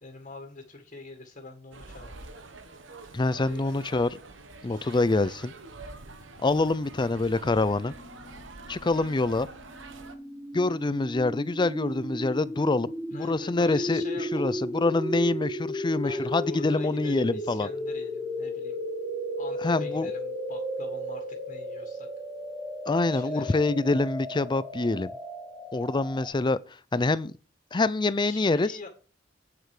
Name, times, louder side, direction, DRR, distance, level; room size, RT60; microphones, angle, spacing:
voice 1, 0.0-2.1 3.3-3.7 4.7-5.1 13.1-14.6 16.0-18.8 19.4-22.1 23.1-23.7 28.2-28.9, left 2 dB, 40° left, 2.0 m, -45 dB
sound 1, 1.7-10.1, right 3 dB, 70° right, 1.3 m, -46 dB
voice 2, 3.1-4.2 4.6-5.5 6.4-7.9 8.7-9.5 10.5-14.0 14.3-17.7 19.6-20.1 22.9-25.1 25.7-26.6 26.9-27.3 27.7-28.7, left 2 dB, 25° left, 0.5 m, -25 dB
sound 2, 7.9-26.3, equal, 5° right, 2.0 m, -35 dB
8.8 x 7.9 x 5.0 m
head